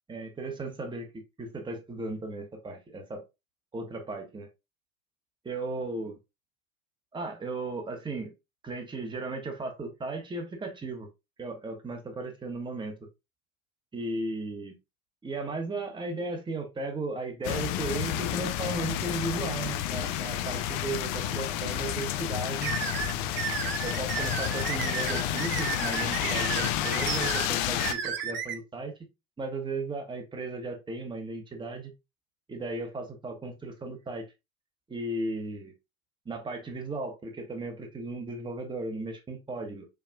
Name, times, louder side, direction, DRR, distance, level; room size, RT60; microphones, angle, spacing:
voice 1, 0.1-3.2 3.7-4.5 5.4-6.2 7.1-8.3 8.6-11.1 11.4-13.1 13.9-14.8 15.2-22.7 23.8-28.9 29.4-31.9 32.5-34.3 34.9-35.7 36.2-39.9, right 2 dB, 10° right, 1.0 m, -36 dB
sound 1, 17.4-27.9, left 11 dB, 45° left, 0.6 m, -30 dB
sound 2, 22.6-28.5, right 8 dB, 30° right, 0.7 m, -33 dB
4.6 x 3.4 x 2.4 m
hypercardioid pair, 85°, 41 cm